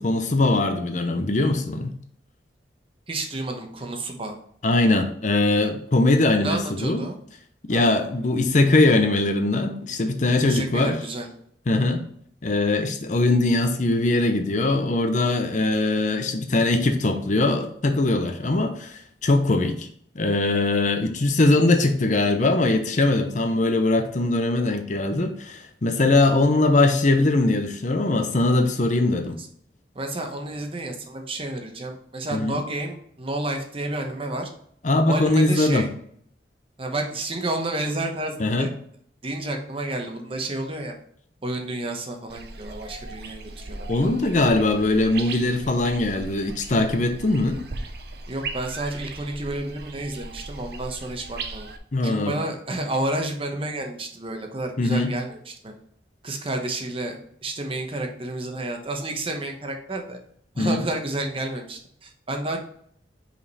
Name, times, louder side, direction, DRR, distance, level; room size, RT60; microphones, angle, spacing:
voice 1, 0.0-1.9 4.6-7.0 7.7-11.0 11.7-12.0 12.4-19.9 20.1-29.4 32.3-32.6 34.8-35.9 38.4-38.7 43.9-47.6 51.9-52.4 54.8-55.1 60.6-60.8, left 2 dB, 45° left, 6 dB, 0.7 m, -21 dB
voice 2, 3.1-4.3 6.4-7.2 7.7-8.1 10.4-11.3 29.4-29.5 29.9-34.5 35.0-35.9 36.8-38.7 39.2-40.9 41.4-44.1 48.3-51.7 52.0-55.7 56.2-60.2 60.5-62.6, right 2 dB, 30° right, 3 dB, 1.0 m, -30 dB
sound 1, 42.3-51.8, right 3 dB, 65° right, 0.8 m, -38 dB
5.4 x 5.0 x 4.1 m, 0.64 s
head